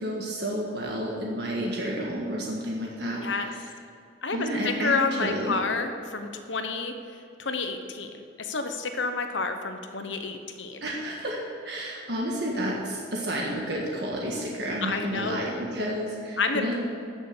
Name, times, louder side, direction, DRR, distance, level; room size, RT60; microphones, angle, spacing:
voice 1, 0.0-3.3 4.3-5.6 10.8-16.8, equal, 60° right, -2 dB, 1.6 m, -31 dB
voice 2, 3.2-3.5 4.2-10.9 14.8-15.6 16.4-16.8, left 4 dB, 85° left, 7 dB, 1.1 m, -30 dB
14.0 x 6.8 x 6.8 m, 2.5 s
head